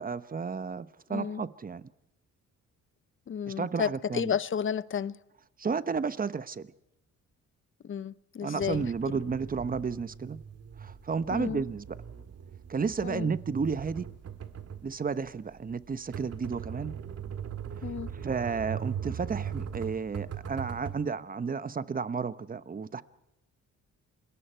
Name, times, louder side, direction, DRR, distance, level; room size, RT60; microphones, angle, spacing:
voice 1, 0.0-1.9 3.5-4.3 5.6-6.7 8.4-10.4 10.8-11.9 12.7-14.1 14.8-17.0 18.1-23.0, right 5 dB, 30° right, 1.0 m, -32 dB
voice 2, 1.1-1.4 3.3-5.2 7.8-9.2 11.3-11.6 13.0-13.3 17.8-18.1, left 7 dB, 40° left, 0.7 m, -32 dB
sound 1, 8.6-21.0, right 8 dB, 55° right, 2.0 m, -40 dB
28.0 x 21.5 x 4.5 m
cardioid pair, 90°, 30 cm